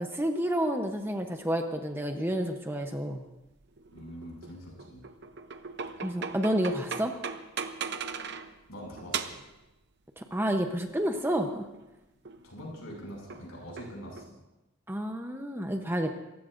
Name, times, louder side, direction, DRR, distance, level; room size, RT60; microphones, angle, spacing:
voice 1, 0.0-3.2 6.0-7.1 10.2-11.7 14.9-16.1, equal, 10° right, 5 dB, 0.8 m, -30 dB
sound 1, 3.5-8.6 9.0-9.5 10.8-11.9 12.2-12.5 13.3-14.3, right 6 dB, 50° right, 0.7 m, -39 dB
voice 2, 3.9-5.1 8.7-9.3 12.4-14.3, equal, 75° left, -1 dB, 6.3 m, -43 dB
28.5 x 15.0 x 2.6 m, 0.99 s
head